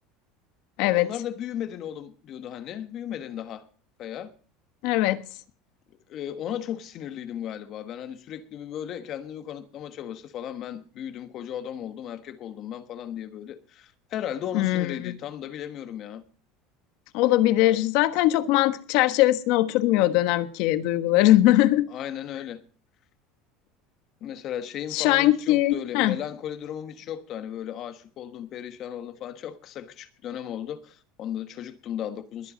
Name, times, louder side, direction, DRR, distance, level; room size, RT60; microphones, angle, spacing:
voice 1, 0.9-3.6 4.0-4.3 6.1-16.2 21.9-22.6 24.2-32.5, left 10 dB, 40° left, 1.2 m, -36 dB
voice 2, 4.8-5.2 14.5-15.1 17.1-21.9 24.9-26.2, left 15 dB, 65° left, 1.2 m, -21 dB
21.5 x 8.0 x 5.1 m
cardioid pair, 150°, 0 cm